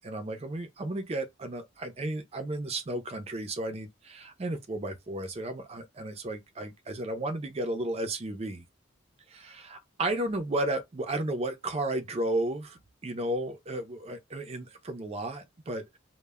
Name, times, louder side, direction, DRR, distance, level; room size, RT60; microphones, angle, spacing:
voice 1, 0.0-8.6 9.3-16.0, right 1 dB, 30° right, 0.5 m, -33 dB
2.1 x 2.1 x 3.4 m
head